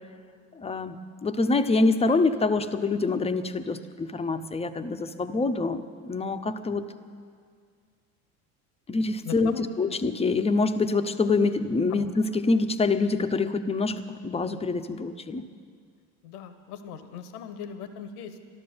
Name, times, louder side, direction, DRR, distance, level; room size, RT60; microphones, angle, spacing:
voice 1, 0.6-6.9 8.9-15.5, left 3 dB, 15° left, 10 dB, 0.7 m, -26 dB
voice 2, 9.2-10.0 11.9-12.1 16.2-18.6, left 7 dB, 80° left, 10 dB, 1.1 m, -39 dB
12.5 x 12.0 x 6.9 m, 2.1 s
hypercardioid pair, 90°, 44 cm